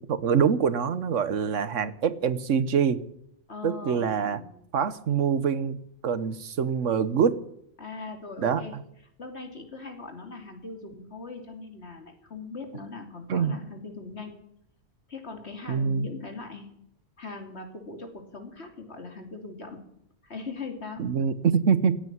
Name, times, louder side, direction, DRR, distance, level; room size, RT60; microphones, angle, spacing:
voice 1, 0.1-3.0 3.6-4.4 4.7-5.8 6.0-7.4 8.4-8.8 13.3-13.5 15.7-16.1 21.0-22.0, right 7 dB, 85° right, 15 dB, 1.4 m, -25 dB
voice 2, 3.5-4.5 7.8-8.7 9.2-14.4 15.1-16.7 17.2-19.9 20.2-21.1, left 3 dB, 60° left, 5 dB, 3.1 m, -40 dB
17.0 x 9.0 x 9.4 m, 0.73 s
omnidirectional pair, 1.3 m